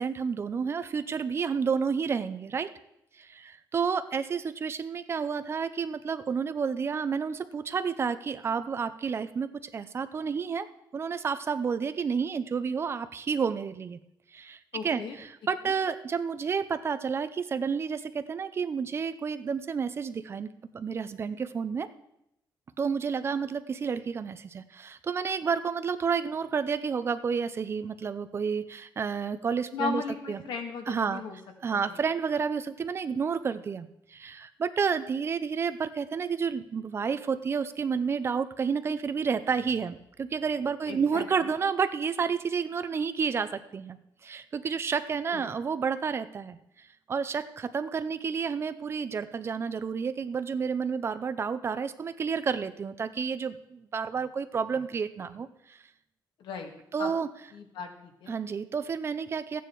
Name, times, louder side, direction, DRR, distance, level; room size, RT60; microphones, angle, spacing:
voice 1, 0.0-2.7 3.2-10.7 10.9-14.0 14.3-20.5 20.7-21.9 22.8-30.0 30.3-30.4 30.9-31.2 31.6-44.0 44.2-46.6 47.1-55.8 56.9-57.3 58.3-59.6, right 6 dB, 30° right, 12 dB, 0.6 m, -30 dB
voice 2, 14.7-15.2 15.6-15.7 29.7-31.4 31.7-32.0 40.9-41.2 45.3-45.4 56.4-56.7 57.0-57.1 57.5-58.4, left 5 dB, 85° left, 4 dB, 2.0 m, -36 dB
14.5 x 9.2 x 4.6 m, 0.80 s
wide cardioid pair, 175°, 8 cm